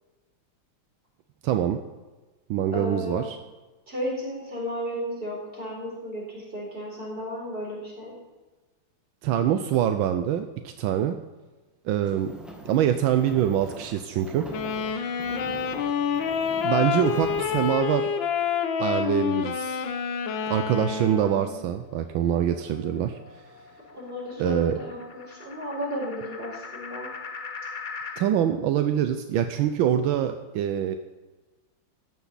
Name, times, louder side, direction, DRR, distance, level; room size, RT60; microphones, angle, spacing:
voice 1, 1.4-1.8 2.5-3.4 9.2-11.2 11.8-12.3 12.6-14.4 16.6-18.1 18.8-19.9 20.5-23.2 24.4-24.8 28.2-31.0, right 10 dB, 80° right, 8 dB, 1.4 m, -24 dB
voice 2, 2.7-3.3 3.9-8.1 15.2-15.7 23.9-27.1, equal, 25° right, -4 dB, 4.6 m, -34 dB
sound 1, 12.0-17.8, equal, ahead, 1.3 m, -44 dB
Wind instrument woodwind instrument, 14.5-21.7, left 7 dB, 75° left, 1.6 m, -28 dB
sound 2, 21.6-28.3, left 5 dB, 90° left, 0.4 m, -41 dB
14.0 x 9.4 x 4.0 m, 1.2 s
omnidirectional pair, 2.2 m